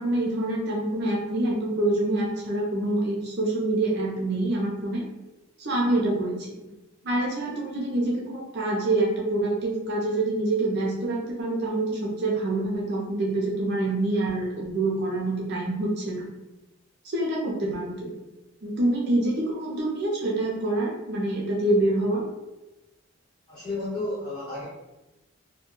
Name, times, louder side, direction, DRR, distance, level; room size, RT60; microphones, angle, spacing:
voice 1, 0.0-5.1 5.6-6.7 7.0-16.3 17.0-18.1 18.6-22.2, right 2 dB, 50° right, -3 dB, 0.5 m, -26 dB
voice 2, 23.5-24.7, left 2 dB, 20° left, -9 dB, 1.2 m, -32 dB
2.2 x 2.2 x 2.9 m, 1.0 s
head